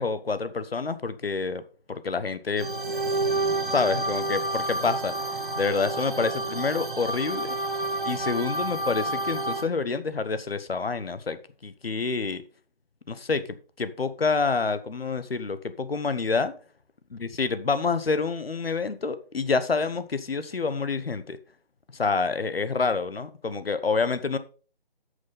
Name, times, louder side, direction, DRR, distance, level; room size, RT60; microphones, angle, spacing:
voice 1, 0.0-1.6 1.9-2.7 3.7-7.5 8.1-12.4 13.1-16.5 17.1-21.4 21.9-24.4, left 4 dB, 70° left, 12 dB, 1.0 m, -28 dB
sound 1, 2.6-9.6, right 2 dB, 55° right, 1.7 m, -29 dB
9.3 x 6.5 x 3.9 m, 0.38 s
figure-of-eight pair, 170°, 30 cm